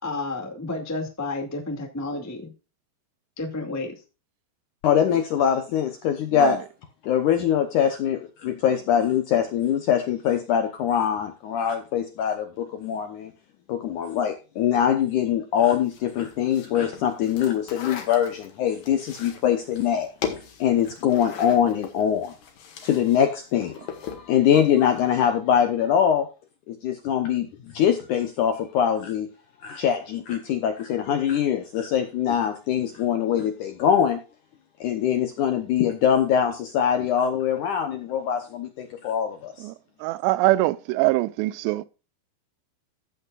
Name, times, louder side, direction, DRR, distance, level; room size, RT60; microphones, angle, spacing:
voice 1, 0.0-2.5 3.4-3.9, left 2 dB, 25° left, 0.3 m, -31 dB
voice 2, 4.8-6.6 7.0-13.3 13.7-20.1 20.6-22.3 22.8-26.3 26.7-29.3 29.6-34.2 34.8-39.5, left 9 dB, 80° left, 1.8 m, -23 dB
sound 1, 15.8-23.2 23.5-24.3, left 8 dB, 60° left, 3.3 m, -38 dB
voice 3, 40.0-41.9, right 18 dB, 90° right, 2.8 m, -23 dB
15.0 x 8.1 x 2.4 m
omnidirectional pair, 4.8 m